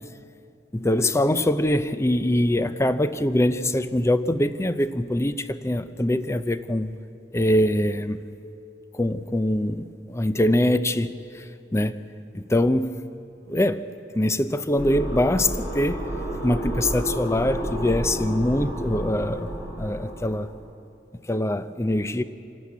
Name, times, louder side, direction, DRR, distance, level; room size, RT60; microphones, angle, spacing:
voice 1, 0.7-6.9 7.3-8.2 8.9-11.4 11.7-12.0 12.3-13.0 13.5-13.8 14.1-16.0 16.4-19.5 19.8-20.5 21.3-22.2, left 1 dB, 15° left, 0.6 m, -23 dB
sound 1, 14.8-20.5, right 1 dB, 55° left, 6.4 m, -31 dB
27.5 x 12.5 x 8.4 m
head